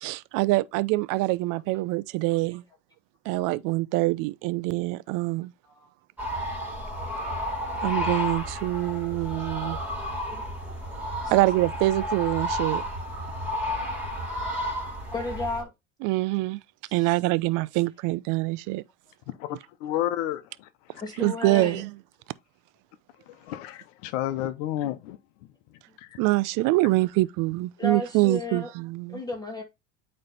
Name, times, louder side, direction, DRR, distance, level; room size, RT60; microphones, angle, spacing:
voice 1, 0.0-2.6 3.3-5.5 7.8-9.8 11.3-12.8 16.0-16.6 16.9-18.8 21.2-21.9 26.2-29.2, right 20 dB, 60° right, 0.6 m, -25 dB
sound 1, 6.2-15.6, equal, 5° right, 3.6 m, -32 dB
voice 2, 15.1-15.7 21.0-21.8 27.8-28.7 29.1-29.6, left 2 dB, 10° left, 2.0 m, -33 dB
voice 3, 19.4-21.0 23.3-25.2 26.0-26.2, left 12 dB, 80° left, 1.0 m, -31 dB
8.7 x 3.3 x 4.0 m
supercardioid pair, 100°, 37 cm